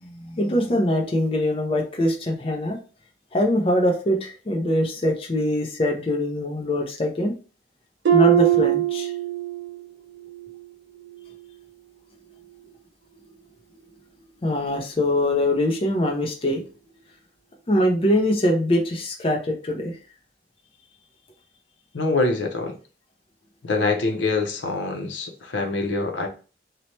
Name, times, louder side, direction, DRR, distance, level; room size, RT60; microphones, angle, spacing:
voice 1, 0.0-2.8 3.3-7.3 8.1-9.1 14.4-16.6 17.7-19.9, left 1 dB, 30° left, 1 dB, 0.4 m, -23 dB
Harp, 8.1-9.8 10.2-10.6 11.1-11.3, right 12 dB, 85° right, 0.5 m, -21 dB
voice 2, 21.9-22.7 23.6-26.3, left 3 dB, 85° left, 4 dB, 0.6 m, -24 dB
2.8 x 2.1 x 2.9 m, 0.36 s
head